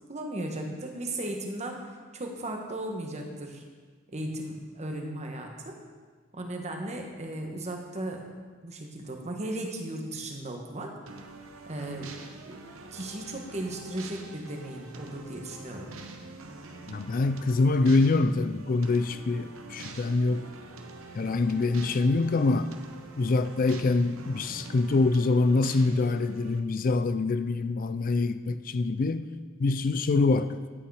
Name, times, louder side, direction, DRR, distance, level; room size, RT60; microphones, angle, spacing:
voice 1, 0.0-1.9 2.1-3.6 4.1-5.8 6.3-8.3 8.6-10.9 11.7-12.1 12.4-15.9, right 1 dB, 35° right, 2 dB, 1.4 m, -36 dB
sound 1, 11.1-26.6, right 3 dB, 75° right, 1.0 m, -46 dB
voice 2, 16.9-20.4 21.1-22.7 23.2-29.3 29.6-30.6, left 3 dB, 40° left, 11 dB, 0.4 m, -25 dB
11.0 x 8.8 x 4.8 m, 1.5 s
head